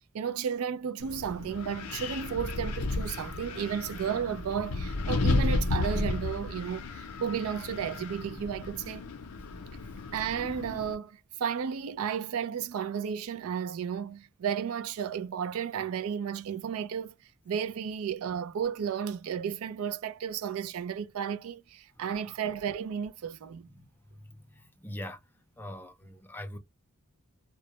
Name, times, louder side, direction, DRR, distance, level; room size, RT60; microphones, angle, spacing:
voice 1, 0.1-9.0 10.1-17.2 17.5-23.7, right 7 dB, 70° right, 0.3 m, -33 dB
Wind, 1.0-11.0, left 3 dB, 90° left, 0.5 m, -33 dB
voice 2, 23.7-25.2 25.6-26.6, left 1 dB, 10° left, 0.4 m, -43 dB
2.2 x 2.0 x 2.7 m
head